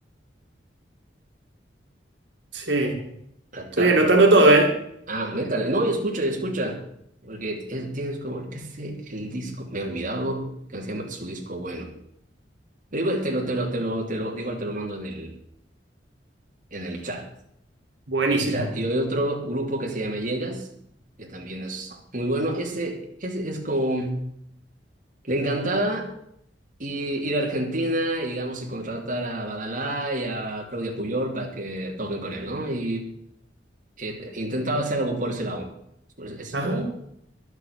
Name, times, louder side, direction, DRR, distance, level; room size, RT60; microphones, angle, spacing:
voice 1, 2.5-3.0 3.8-4.7 18.1-18.6 36.5-36.8, right 2 dB, 80° right, 1 dB, 2.5 m, -18 dB
voice 2, 3.5-4.1 5.1-6.8 7.2-11.9 12.9-15.3 16.7-17.3 18.2-20.7 21.2-24.2 25.3-26.1 26.8-33.1 34.0-35.7 36.2-36.9, right 1 dB, 50° right, -1 dB, 2.9 m, -28 dB
11.5 x 8.1 x 8.7 m, 0.73 s
head